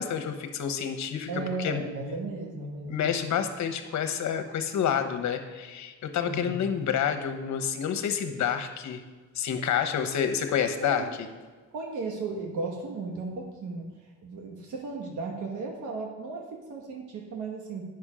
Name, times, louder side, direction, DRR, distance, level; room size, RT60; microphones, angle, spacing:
voice 1, 0.0-1.3 1.6-1.8 2.9-9.0 9.3-11.0, left 8 dB, 65° left, 8 dB, 1.0 m, -28 dB
voice 2, 1.3-3.2 6.2-6.6 10.8-11.3 11.7-13.9 14.2-17.8, right 3 dB, 80° right, 1 dB, 1.3 m, -35 dB
8.8 x 6.0 x 4.9 m, 1.4 s
cardioid pair, 90°, 30 cm